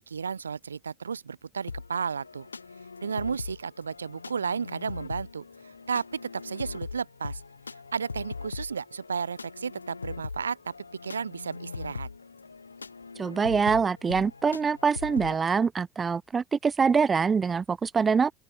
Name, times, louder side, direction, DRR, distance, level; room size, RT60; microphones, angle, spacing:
voice 1, 0.1-2.5 3.0-7.4 7.9-10.6 11.0-12.1, right 6 dB, 85° right, 0.6 m, -33 dB
sound 1, 1.7-15.4, left 4 dB, 90° left, 7.4 m, -41 dB
voice 2, 13.2-18.3, right 5 dB, 30° right, 0.4 m, -24 dB
open air
figure-of-eight pair, 65°, 0 cm